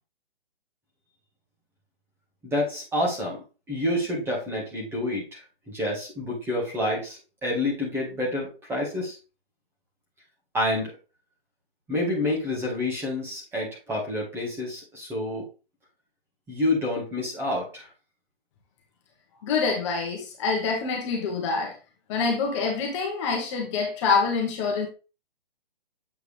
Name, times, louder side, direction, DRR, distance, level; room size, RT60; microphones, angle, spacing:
voice 1, 2.4-9.2 10.5-10.9 11.9-15.5 16.5-17.9, left 1 dB, 10° right, 1.9 m, -28 dB
voice 2, 19.4-21.7 22.1-24.9, left 4 dB, 30° left, 1.7 m, -26 dB
8.0 x 4.5 x 3.5 m
hypercardioid pair, 155°, 30 cm